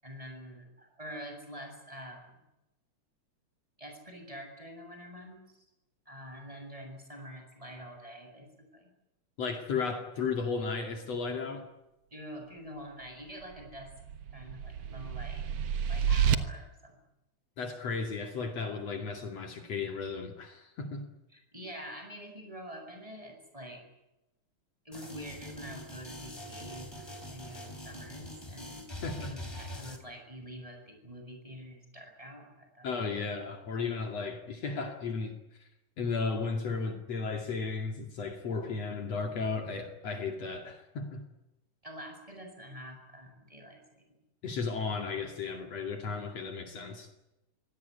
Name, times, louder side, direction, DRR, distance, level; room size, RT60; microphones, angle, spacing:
voice 1, 0.0-2.3 3.8-5.4 6.1-8.5 8.7-8.9 12.1-13.9 14.3-15.5 15.9-17.0 21.3-23.8 24.8-32.9 41.8-44.0, equal, 10° right, 3 dB, 7.6 m, -46 dB
voice 2, 9.4-11.7 17.6-21.0 29.0-29.3 32.8-35.3 36.0-41.2 44.4-47.1, left 4 dB, 60° left, 5 dB, 3.5 m, -34 dB
sound 1, 13.5-16.4, right 8 dB, 65° right, 2.3 m, -30 dB
sound 2, 24.9-30.0, left 1 dB, 10° left, 3.1 m, -44 dB
25.0 x 18.0 x 9.6 m, 0.93 s
omnidirectional pair, 3.3 m